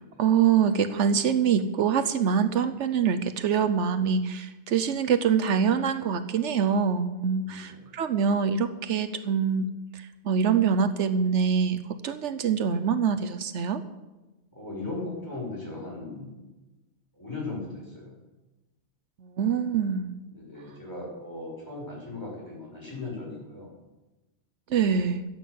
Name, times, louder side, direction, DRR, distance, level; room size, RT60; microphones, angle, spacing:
voice 1, 0.2-9.7 9.9-13.8 19.2-20.1 24.7-25.3, right 7 dB, 80° right, 9 dB, 1.1 m, -25 dB
voice 2, 7.5-7.9 14.5-16.4 17.2-18.1 20.3-23.7, left 2 dB, 15° left, -4 dB, 6.1 m, -38 dB
13.5 x 8.0 x 8.4 m, 1.1 s
omnidirectional pair, 1.2 m